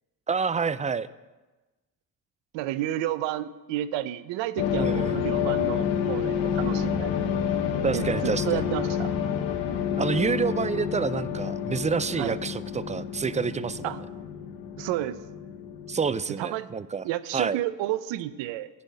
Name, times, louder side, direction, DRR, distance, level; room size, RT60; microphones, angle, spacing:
voice 1, 0.3-1.1 4.8-5.2 7.8-8.7 10.0-14.0 15.9-17.0 17.3-17.6, right 5 dB, 15° right, 17 dB, 0.4 m, -28 dB
voice 2, 2.5-7.3 7.9-9.1 12.2-12.4 13.8-14.0 14.8-15.2 16.4-16.7 17.0-18.7, right 13 dB, 75° right, 16 dB, 0.7 m, -31 dB
sound 1, 4.6-16.2, left 8 dB, 75° left, 1.2 m, -29 dB
10.5 x 5.5 x 8.4 m, 1.2 s
hypercardioid pair, 50°, 46 cm